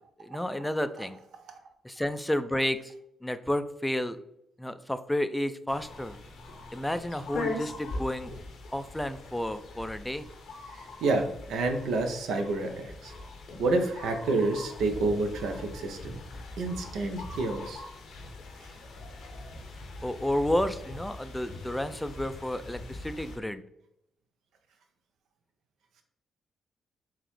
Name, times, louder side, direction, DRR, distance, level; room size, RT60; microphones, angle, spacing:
voice 1, 0.2-1.2 1.8-2.9 3.2-4.2 4.6-6.2 6.7-8.3 8.7-10.3 20.0-23.6, left 1 dB, 10° left, 11 dB, 0.3 m, -31 dB
sound 1, 5.7-23.4, left 2 dB, 70° left, 0.6 m, -42 dB
voice 2, 10.7-13.1 13.6-16.2 16.6-17.8 18.6-18.7, right 2 dB, 70° right, 5 dB, 0.5 m, -29 dB
3.8 x 2.8 x 3.0 m, 0.78 s
hypercardioid pair, 45°, 0 cm